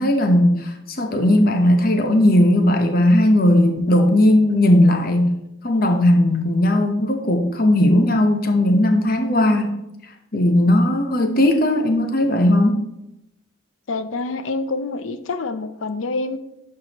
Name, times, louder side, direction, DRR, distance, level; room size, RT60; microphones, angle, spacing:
voice 1, 0.0-5.3 5.6-9.7 10.3-12.8, left 1 dB, 45° left, 5 dB, 0.8 m, -17 dB
voice 2, 13.9-16.4, left 3 dB, 85° left, 11 dB, 0.6 m, -26 dB
10.5 x 4.8 x 2.9 m, 0.87 s
head